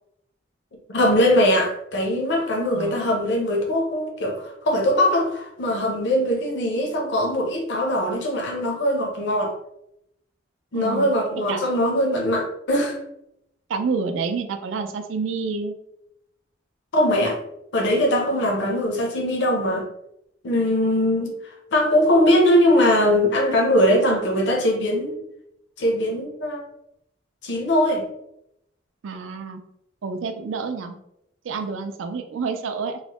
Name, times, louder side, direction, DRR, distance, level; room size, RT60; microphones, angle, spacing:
voice 1, 0.9-9.5 10.7-13.0 16.9-17.4 17.7-19.9 20.4-21.3 21.7-25.1 25.8-26.6 27.4-28.1, left 1 dB, 65° left, 1 dB, 0.6 m, -21 dB
voice 2, 2.7-3.0 10.7-11.1 11.5-11.6 13.7-15.7 18.5-18.7 29.0-29.6 30.0-31.0 31.4-33.0, right 4 dB, 85° right, 7 dB, 0.4 m, -28 dB
3.1 x 2.0 x 2.8 m, 0.80 s
head